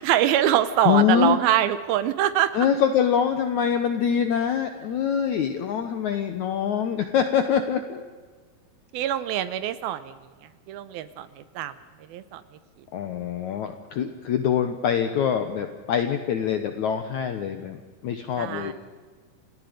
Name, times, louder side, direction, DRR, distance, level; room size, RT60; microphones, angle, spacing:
voice 1, 0.0-2.5 8.9-10.1 10.7-11.7 12.1-12.4 18.4-18.7, right 11 dB, 75° right, 14 dB, 2.4 m, -24 dB
voice 2, 0.9-1.4 2.5-8.0 12.9-18.7, left 8 dB, 75° left, 8 dB, 1.8 m, -24 dB
29.5 x 17.5 x 5.2 m, 1.5 s
omnidirectional pair, 4.7 m